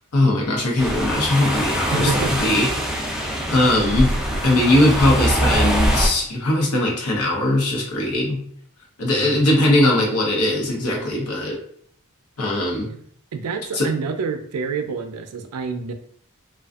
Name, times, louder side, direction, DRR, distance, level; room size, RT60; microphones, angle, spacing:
voice 1, 0.1-2.7 3.5-4.1 4.4-8.4 9.0-11.6 12.4-12.9 13.7-13.9, left 1 dB, 85° left, -1 dB, 0.8 m, -20 dB
sound 1, 0.8-6.1, right 1 dB, ahead, 0.3 m, -23 dB
voice 2, 1.8-2.3 4.3-4.5 9.1-9.6 12.9-13.0 13.3-15.9, right 5 dB, 90° right, 8 dB, 0.4 m, -28 dB
2.5 x 2.3 x 2.3 m, 0.64 s
head